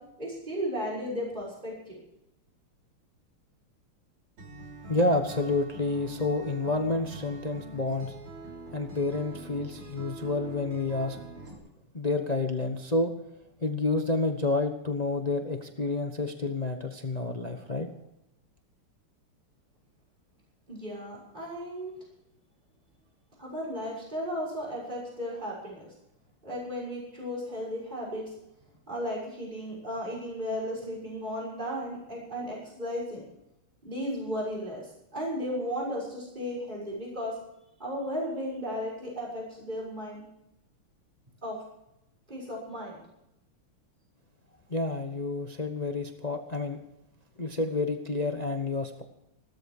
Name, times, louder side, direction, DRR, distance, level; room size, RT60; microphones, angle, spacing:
voice 1, 0.2-2.0 20.7-21.9 23.4-25.9 26.4-28.3 28.9-33.2 33.8-37.3 37.8-40.2 41.4-41.6 42.3-43.0, equal, 20° right, -5 dB, 6.4 m, -35 dB
Acoustic guitar, 4.4-11.6, right 1 dB, 80° right, 4.7 m, -44 dB
voice 2, 4.9-8.1 8.7-11.2 11.9-13.1 13.6-17.9 44.7-46.8 47.4-49.0, left 2 dB, 30° left, 5 dB, 0.8 m, -29 dB
17.5 x 13.5 x 4.9 m, 0.84 s
omnidirectional pair, 2.4 m